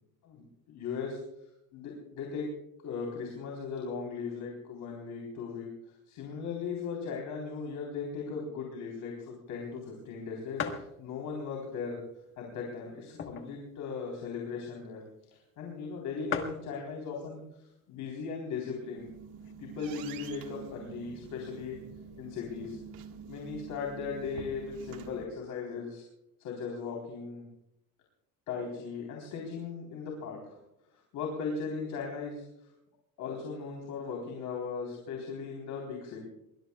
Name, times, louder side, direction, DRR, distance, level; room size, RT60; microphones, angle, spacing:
voice 1, 0.2-1.2 1.7-2.5 2.8-12.0 12.4-15.0 15.3-19.1 19.6-21.8 22.2-22.8 23.3-26.0 26.4-27.4 28.5-30.6 30.9-32.7 33.2-36.2, left 5 dB, 65° left, -1 dB, 3.8 m, -38 dB
sound 1, 9.6-9.7 10.1-10.2 10.6-10.9 11.6-11.7 12.5-13.6 14.0-14.1 14.3-14.5 15.3-15.4 15.6-15.7 16.0-16.1 16.3-16.7 17.6-17.9 18.5-18.6 18.7-19.5, left 7 dB, 35° left, 1.4 m, -37 dB
sound 2, 18.7-25.2, right 6 dB, 85° right, 1.8 m, -47 dB
22.5 x 21.0 x 2.3 m, 0.81 s
cardioid pair, 170°, 34 cm